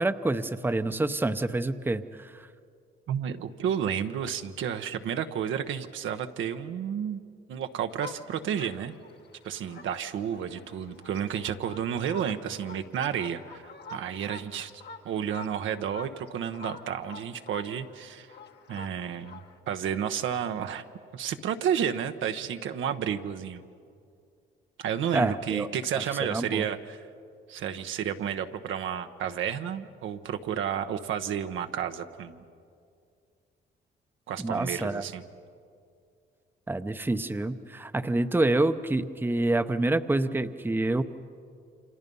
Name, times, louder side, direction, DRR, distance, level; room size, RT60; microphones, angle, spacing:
voice 1, 0.0-2.4 25.1-25.7 25.9-26.0 26.3-26.6 34.4-35.0 36.7-41.0, right 2 dB, 10° right, 10 dB, 0.8 m, -27 dB
voice 2, 3.1-7.2 7.5-8.9 9.4-14.7 15.0-18.3 18.7-19.4 19.7-20.8 21.1-23.6 24.8-27.0 27.5-32.4 34.3-35.2, right 8 dB, 80° right, 7 dB, 1.1 m, -31 dB
sound 1, 7.9-19.6, left 4 dB, 60° left, 1.5 m, -47 dB
29.5 x 26.5 x 5.5 m, 2.3 s
cardioid pair, 90°, 20 cm